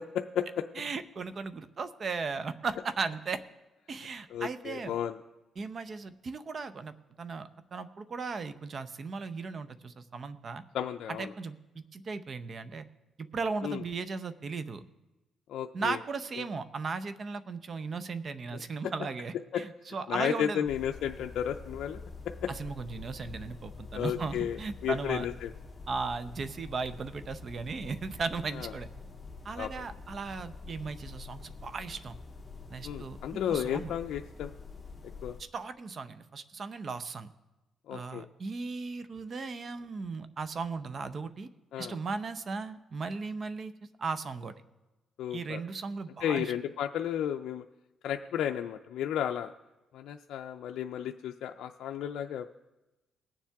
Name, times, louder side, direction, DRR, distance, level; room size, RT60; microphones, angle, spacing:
voice 1, 0.8-3.4 3.9-4.9 5.6-10.6 11.1-12.8 13.2-14.8 15.7-20.7 22.5-25.3 25.9-28.9 29.4-32.2 32.7-33.9 35.4-37.3 37.9-41.5 41.8-43.7 44.0-44.5 45.3-46.5, right 4 dB, 45° right, 12 dB, 0.7 m, -37 dB
voice 2, 4.3-5.2 10.7-11.3 13.6-13.8 15.5-16.0 18.5-18.6 19.5-19.6 20.1-22.1 22.4-22.5 23.9-25.5 28.5-28.7 29.6-29.7 32.8-34.5 35.2-35.4 37.9-38.3 41.7-42.0 45.2-45.6 46.2-47.6 48.0-49.5 49.9-52.5, left 9 dB, 75° left, 5 dB, 0.4 m, -33 dB
sound 1, 20.7-35.4, left 4 dB, 15° left, 1.9 m, -46 dB
20.0 x 7.2 x 3.5 m, 1.0 s
cardioid pair, 90°, 0 cm